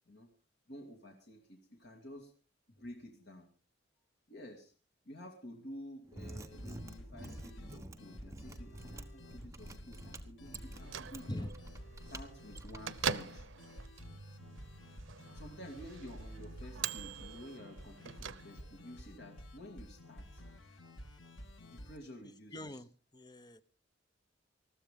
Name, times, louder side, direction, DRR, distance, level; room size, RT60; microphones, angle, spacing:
voice 1, 0.7-2.3 2.7-3.5 4.3-4.7 5.0-11.4 12.1-13.5 15.3-20.4 21.7-22.8, equal, 60° left, 2.4 m, -51 dB
Mechanisms, 6.0-13.2, right 1 dB, 15° right, 1.2 m, -49 dB
sound 1, 6.5-22.0, left 1 dB, 90° left, 1.8 m, -52 dB
Bell / Microwave oven, 10.6-18.9, right 7 dB, 90° right, 0.7 m, -43 dB
voice 2, 22.2-23.6, left 1 dB, 20° left, 0.9 m, -43 dB
20.5 x 14.0 x 3.7 m
head